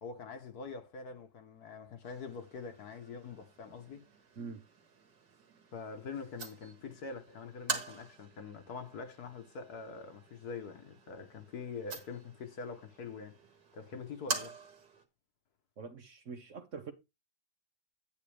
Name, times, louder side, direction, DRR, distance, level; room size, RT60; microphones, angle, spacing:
voice 1, 0.0-4.0 5.7-13.4 13.7-14.6, left 5 dB, 55° left, 1.5 m, -44 dB
sound 1, 2.0-15.0, right 5 dB, 65° right, 2.1 m, -45 dB
voice 2, 15.8-16.9, right 5 dB, 50° right, 1.2 m, -44 dB
9.3 x 8.6 x 3.3 m
omnidirectional pair, 2.1 m